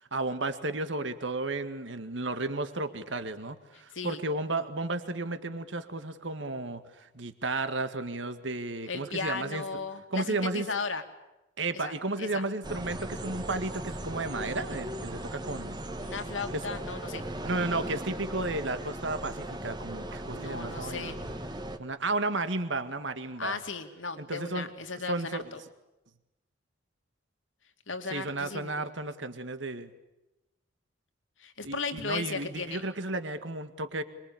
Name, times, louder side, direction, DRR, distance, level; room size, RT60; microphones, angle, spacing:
voice 1, 0.1-9.6 10.1-10.7 11.6-15.8 16.5-16.6 17.4-21.1 21.8-23.6 24.2-24.7 25.1-25.5 28.1-29.9 31.6-34.0, right 2 dB, 70° right, 10 dB, 1.9 m, -33 dB
voice 2, 8.9-11.0 11.7-11.9 12.2-12.4 16.0-17.2 20.3-21.2 23.4-25.6 27.9-28.8 31.4-32.9, left 4 dB, 80° left, 7 dB, 2.6 m, -36 dB
sound 1, 12.6-21.8, right 1 dB, 20° right, 1.5 m, -38 dB
26.0 x 23.0 x 8.6 m, 0.96 s
head